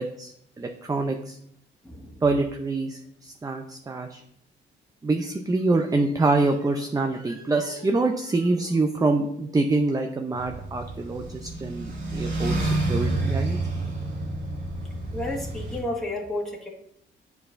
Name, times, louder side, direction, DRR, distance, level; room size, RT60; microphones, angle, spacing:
voice 1, 0.0-1.4 2.2-4.2 5.0-13.6, right 3 dB, 20° right, 5 dB, 0.5 m, -26 dB
voice 2, 1.8-2.2 15.0-16.7, left 1 dB, ahead, -2 dB, 1.6 m, -31 dB
sound 1, 6.7-9.8, left 2 dB, 45° left, 1.7 m, -50 dB
sound 2, 10.3-15.8, right 2 dB, 70° right, 2.1 m, -29 dB
8.5 x 4.7 x 2.6 m, 0.71 s
cardioid pair, 90°, 20 cm